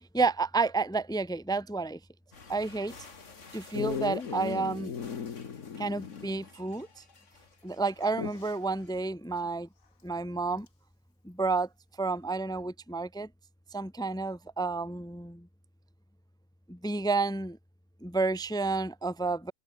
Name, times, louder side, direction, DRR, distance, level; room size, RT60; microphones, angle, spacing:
voice 1, 0.1-2.0 2.5-2.9 3.5-5.0 5.8-6.9 7.6-9.7 10.0-10.7 11.2-11.7 12.0-13.3 13.7-15.5 16.7-17.6 18.0-19.5, right 3 dB, 5° left, 0.6 m, -30 dB
sound 1, 2.3-9.1, left 4 dB, 60° left, 2.5 m, -53 dB
Dog, 3.7-6.5 6.8-6.9 8.0-8.6 10.7-10.8, left 6 dB, 85° left, 2.0 m, -37 dB
omnidirectional pair, 1.4 m